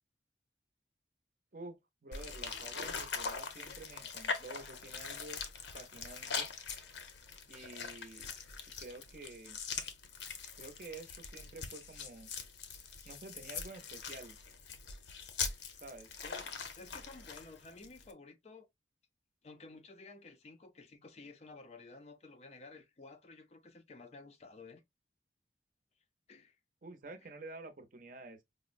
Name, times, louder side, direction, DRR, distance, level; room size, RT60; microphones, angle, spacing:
voice 1, 1.5-5.4 5.7-6.5 7.5-8.3 8.8-9.6 10.6-12.3 13.0-14.4 15.8-16.1 26.8-28.4, right 2 dB, 45° right, 0.6 m, -49 dB
sound 1, 2.1-18.1, left 5 dB, 80° left, 0.7 m, -42 dB
voice 2, 16.2-18.7 19.4-24.8 26.3-26.6, left 3 dB, 35° left, 0.4 m, -53 dB
4.9 x 2.0 x 2.5 m
head